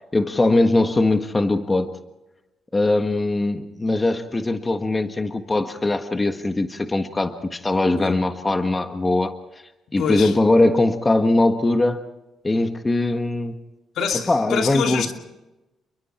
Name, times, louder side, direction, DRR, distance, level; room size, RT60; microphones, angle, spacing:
voice 1, 0.1-1.9 2.7-9.3 9.9-12.0 12.4-13.6 14.3-15.1, left 2 dB, 20° left, 1.5 m, -21 dB
voice 2, 10.0-10.3 14.0-15.1, left 6 dB, 75° left, 2.6 m, -25 dB
29.0 x 22.5 x 4.4 m
cardioid pair, 90°, 0 cm